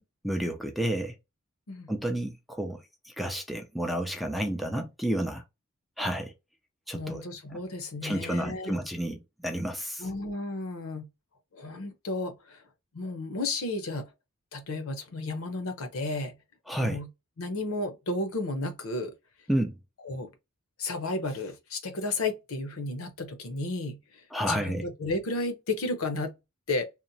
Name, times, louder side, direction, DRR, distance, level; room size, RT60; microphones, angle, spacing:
voice 1, 0.2-1.1 1.9-5.4 6.0-6.3 6.9-7.2 8.0-10.1 16.7-17.0 19.5-19.8 24.3-24.9, right 1 dB, ahead, 0.4 m, -30 dB
voice 2, 6.9-8.7 10.0-11.1 11.5-12.6 12.9-14.1 14.5-16.3 16.8-17.1 17.4-19.1 20.0-20.3 20.8-26.3 26.7-26.8, left 2 dB, 70° left, 0.7 m, -33 dB
2.9 x 2.1 x 2.6 m
head